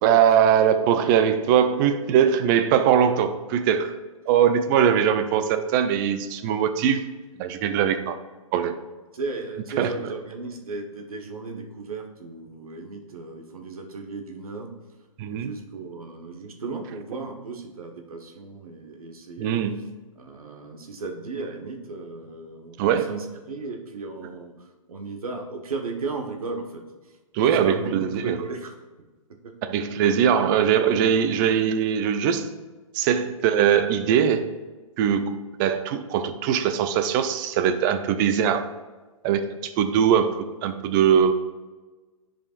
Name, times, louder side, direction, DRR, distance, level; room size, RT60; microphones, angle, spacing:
voice 1, 0.0-4.0 4.3-7.1 7.4-8.2 8.5-8.8 9.8-9.9 15.2-15.5 19.4-19.8 22.8-23.1 27.3-28.4 29.6-32.6 32.9-34.5 35.0-38.7 39.2-41.3, right 8 dB, 35° right, 9 dB, 0.6 m, -21 dB
voice 2, 9.1-14.7 15.3-19.5 20.1-27.2 27.5-28.8 29.3-29.5, right 3 dB, 80° right, 4 dB, 1.2 m, -35 dB
10.5 x 5.0 x 2.5 m, 1.3 s
hypercardioid pair, 125°, 18 cm